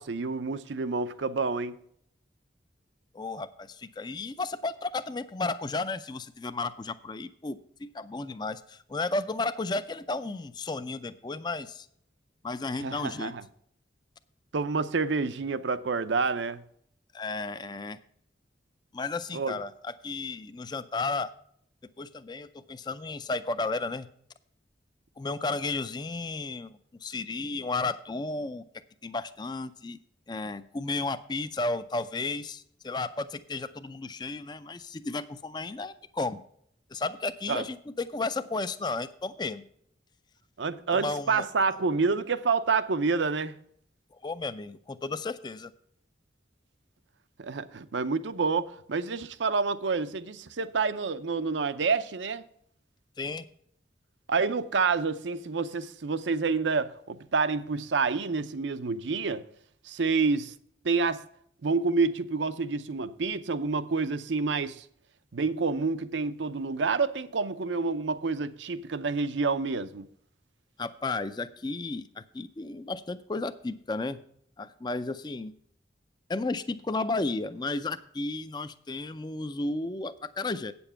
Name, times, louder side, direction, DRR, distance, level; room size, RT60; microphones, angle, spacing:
voice 1, 0.0-1.8 12.8-13.4 14.5-16.6 19.3-19.6 37.5-37.6 40.6-43.6 47.4-52.4 54.3-59.4 59.8-60.5 60.8-61.2 61.6-64.8 65.3-70.0, right 4 dB, 80° right, 0.6 m, -28 dB
voice 2, 3.1-11.9 12.4-13.3 17.1-18.0 18.9-21.3 22.0-24.1 25.2-28.6 29.0-30.0 30.3-36.4 36.9-39.6 40.9-41.4 44.1-45.7 53.2-53.5 70.8-74.2 74.6-75.5 76.3-80.7, left 3 dB, 25° left, 0.4 m, -33 dB
8.8 x 7.0 x 5.6 m
head